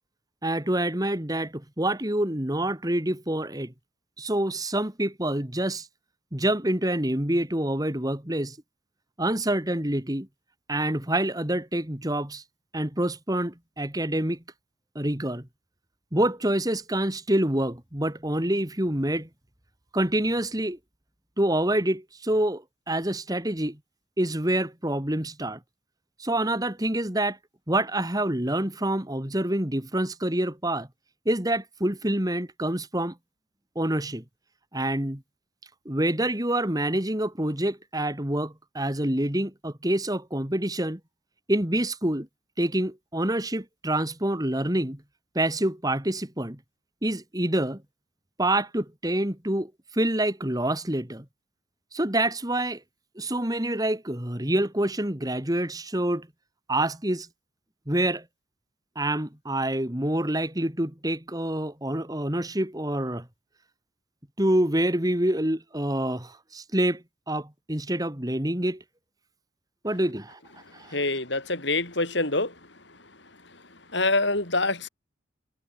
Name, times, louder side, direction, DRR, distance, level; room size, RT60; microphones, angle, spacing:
voice 1, 0.4-3.7 4.2-5.9 6.3-8.6 9.2-10.3 10.7-12.4 12.7-14.4 15.0-15.5 16.1-19.3 19.9-20.8 21.4-23.8 24.2-25.6 26.2-27.4 27.7-30.9 31.3-33.1 33.8-34.2 34.7-35.2 35.9-41.0 41.5-42.3 42.6-45.0 45.3-46.6 47.0-47.8 48.4-51.2 51.9-52.8 53.2-56.3 56.7-57.3 57.9-58.2 59.0-63.3 64.4-68.8 69.8-70.4 70.7-71.0, right 1 dB, 20° right, 2.2 m, -27 dB
voice 2, 70.7-72.5 72.9-73.0 73.7-74.9, left 2 dB, 60° left, 7.1 m, -26 dB
head